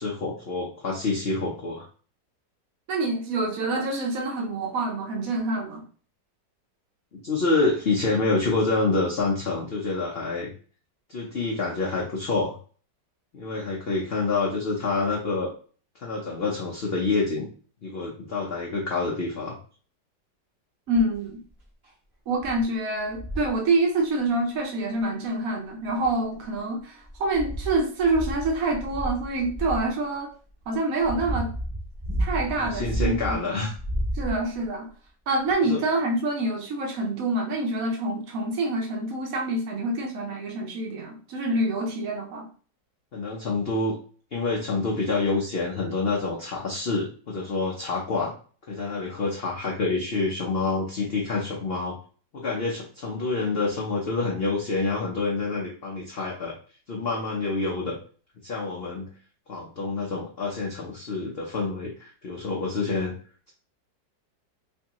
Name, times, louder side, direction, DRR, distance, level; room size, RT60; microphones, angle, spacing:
voice 1, 0.0-1.8 7.1-10.5 11.1-12.5 13.3-15.5 16.0-17.5 17.8-19.6 32.5-33.7 35.7-35.8 43.1-44.0 44.3-48.3 48.7-52.0 52.3-56.6 56.9-58.0 58.4-59.1 59.5-63.1, left 3 dB, 60° left, 0.6 m, -27 dB
voice 2, 2.9-5.8 20.9-21.4 22.3-30.3 30.7-31.5 32.2-33.6 34.1-34.9 35.3-42.5, right 2 dB, 60° right, 1.0 m, -26 dB
Practicing dance moves, 20.9-21.3 21.8-21.9 22.4-22.6 23.1-23.6 25.0-25.1 25.9-26.5 27.0-29.9 30.6-33.4 33.7-34.7 35.5-35.6, right 1 dB, 20° right, 0.8 m, -31 dB
3.4 x 3.2 x 2.9 m
omnidirectional pair, 1.9 m